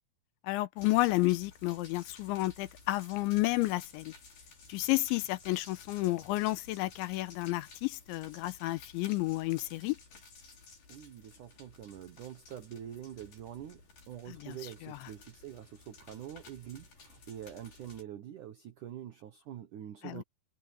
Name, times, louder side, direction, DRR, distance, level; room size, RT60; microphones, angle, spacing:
voice 1, 0.4-4.1 4.7-10.0 14.3-14.5 14.8-15.0 20.0-20.2, left 19 dB, 85° left, 3.1 m, -31 dB
sound 1, 0.8-18.0, left 4 dB, 50° left, 7.8 m, -55 dB
voice 2, 10.9-20.2, right 10 dB, 75° right, 1.8 m, -45 dB
omnidirectional pair, 5.4 m